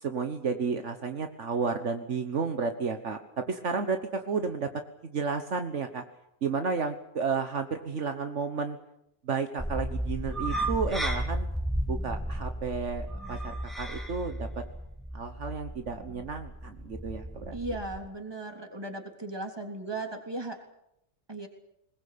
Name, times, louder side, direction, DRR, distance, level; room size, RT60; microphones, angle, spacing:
voice 1, 0.0-4.7 5.0-6.0 6.4-8.8 9.2-11.5 11.9-14.5 15.1-17.6, right 5 dB, 70° right, 7 dB, 1.6 m, -32 dB
sound 1, 9.6-18.0, right 1 dB, ahead, 3.4 m, -34 dB
voice 2, 17.5-20.6 21.3-21.5, right 2 dB, 20° right, 3 dB, 3.5 m, -36 dB
21.0 x 21.0 x 8.6 m, 0.81 s
omnidirectional pair, 1.3 m